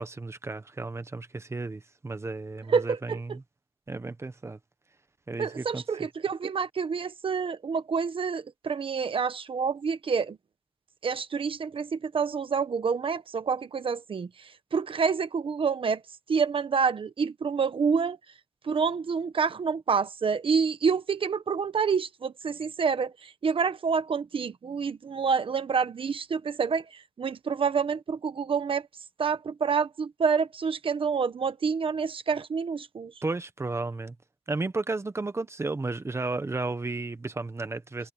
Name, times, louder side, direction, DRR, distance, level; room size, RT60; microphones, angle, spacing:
voice 1, 0.0-3.4 3.9-4.6 5.3-5.8 33.2-34.1 34.5-38.1, right 3 dB, 25° right, 1.2 m, -33 dB
voice 2, 2.7-3.4 5.4-10.4 11.0-14.3 14.7-16.0 16.3-18.2 18.6-28.9 29.2-33.1, right 5 dB, 60° right, 1.2 m, -28 dB
wide cardioid pair, 150°, 10 cm